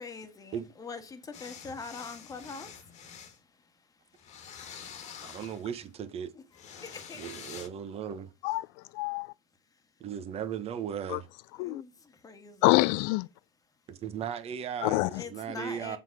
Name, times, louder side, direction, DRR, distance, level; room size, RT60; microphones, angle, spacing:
voice 1, 0.0-4.4 6.3-6.4 6.8-7.3 9.7-9.8 11.6-12.6 15.1-16.0, left 4 dB, 20° left, 1.6 m, -44 dB
sound 1, 1.3-3.4 4.2-5.9 6.5-7.7, left 7 dB, 40° left, 1.6 m, -47 dB
voice 2, 5.2-6.3 7.2-8.3 10.0-11.3 13.9-16.0, right 8 dB, 35° right, 1.2 m, -37 dB
voice 3, 8.4-9.3 11.1-11.2 11.6-11.8 12.6-13.3 14.8-15.2, left 22 dB, 55° left, 0.4 m, -26 dB
7.3 x 4.0 x 4.9 m
supercardioid pair, 105°, 18 cm